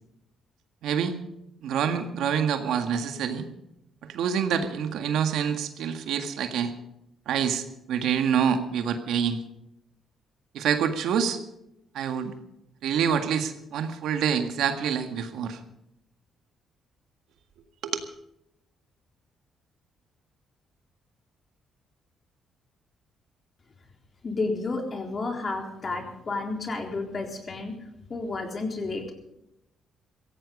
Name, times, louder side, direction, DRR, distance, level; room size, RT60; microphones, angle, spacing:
voice 1, 0.8-1.1 1.6-3.4 4.1-6.7 7.3-9.4 10.5-11.4 11.9-12.3 12.8-15.6 17.8-18.1, right 7 dB, 80° right, 7 dB, 1.8 m, -26 dB
voice 2, 24.2-27.8 28.1-29.1, left 3 dB, 40° left, 3 dB, 4.0 m, -31 dB
16.5 x 15.5 x 5.4 m, 0.84 s
cardioid pair, 90°, 0 cm